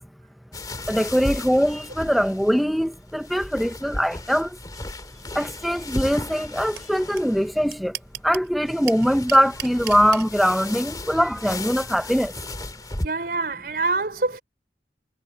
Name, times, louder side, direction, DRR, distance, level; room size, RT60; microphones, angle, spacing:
sound 1, 0.5-13.1, left 2 dB, 20° left, 2.0 m, -35 dB
voice 1, 0.9-4.6 5.3-8.0 8.2-12.3, equal, ahead, 0.5 m, -22 dB
sound 2, 6.8-6.9 7.2-7.3 7.5-8.5 8.9-10.2, right 11 dB, 80° right, 2.8 m, -33 dB
voice 2, 13.0-14.4, right 3 dB, 55° right, 5.1 m, -25 dB
head